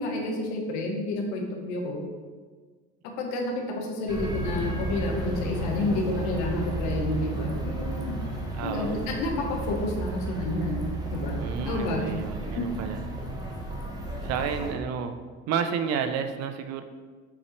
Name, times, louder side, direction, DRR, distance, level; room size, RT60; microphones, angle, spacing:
voice 1, 0.0-2.0 3.2-8.1 8.6-12.0 12.5-12.6, left 2 dB, 80° left, 1 dB, 1.2 m, -30 dB
sound 1, 4.1-14.7, right 1 dB, 15° right, 1.0 m, -33 dB
voice 2, 8.5-9.0 11.4-13.0 14.2-16.8, right 7 dB, 60° right, 8 dB, 0.6 m, -31 dB
7.3 x 4.2 x 3.1 m, 1.5 s
supercardioid pair, 105°, 29 cm